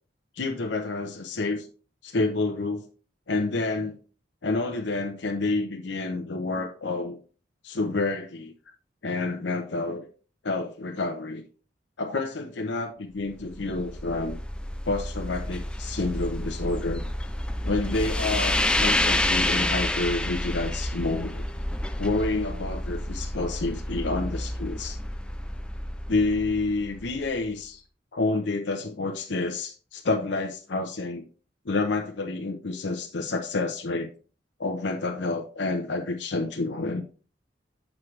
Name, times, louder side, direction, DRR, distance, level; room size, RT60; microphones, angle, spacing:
voice 1, 0.4-1.7 2.0-2.8 3.3-4.0 4.4-7.2 7.6-8.5 9.0-10.0 10.4-11.4 12.0-14.4 14.8-17.0 17.6-21.4 22.0-25.0 26.1-27.8 28.1-31.2 31.6-34.1 34.6-37.0, left 3 dB, 85° left, 2 dB, 0.8 m, -29 dB
sound 1, 13.3-27.5, left 1 dB, 5° left, 0.4 m, -29 dB
7.5 x 6.2 x 3.2 m, 0.38 s
head